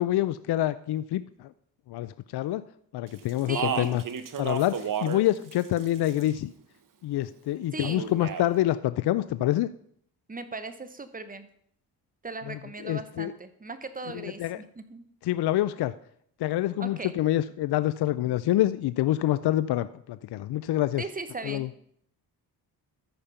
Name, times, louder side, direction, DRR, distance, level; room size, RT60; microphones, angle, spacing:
voice 1, 0.0-1.5 1.9-2.6 2.9-4.0 4.4-6.5 7.0-9.7 12.5-13.3 14.1-14.6 15.2-15.9 16.4-21.0 21.4-21.7, left 14 dB, 70° left, 14 dB, 0.5 m, -27 dB
Speech, 3.3-5.2 5.5-6.4 7.8-8.5, right 7 dB, 50° right, 1.0 m, -32 dB
voice 2, 3.5-4.0 7.7-8.1 10.3-11.5 12.2-15.0 16.8-17.1 21.0-21.7, right 3 dB, 20° right, 10 dB, 1.1 m, -38 dB
13.5 x 5.2 x 5.7 m, 0.67 s
cardioid pair, 85°, 40 cm